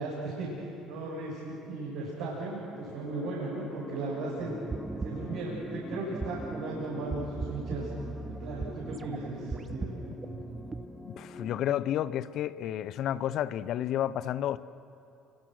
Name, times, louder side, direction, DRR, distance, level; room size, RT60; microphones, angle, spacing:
voice 1, 0.0-4.5 5.0-7.9 8.2-9.9, right 2 dB, 70° right, -6 dB, 6.8 m, -36 dB
sound 1, 2.0-11.6, left 3 dB, 30° left, 3.1 m, -46 dB
sound 2, 4.4-10.9, right 4 dB, 30° right, 0.9 m, -39 dB
voice 2, 11.0-14.6, left 11 dB, 60° left, 16 dB, 0.7 m, -31 dB
29.5 x 25.0 x 6.4 m, 2.7 s
hypercardioid pair, 55°, 0 cm